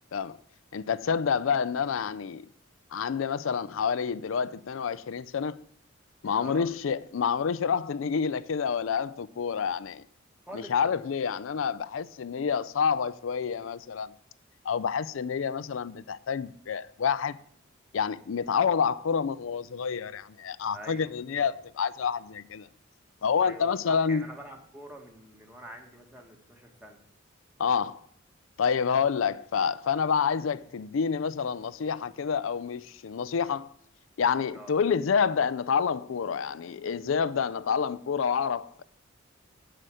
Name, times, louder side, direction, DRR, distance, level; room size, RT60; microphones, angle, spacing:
voice 1, 0.7-2.4 2.9-5.6 6.2-10.0 10.5-14.1 14.6-17.4 17.9-22.7 23.2-24.3 27.6-28.0 28.6-33.7 34.2-38.8, left 6 dB, 80° left, 0.4 m, -28 dB
voice 2, 6.3-6.7 10.5-10.7 20.7-21.1 21.4-21.5 23.4-27.0 34.5-34.7, equal, 10° right, 1.7 m, -45 dB
11.0 x 5.1 x 7.7 m
head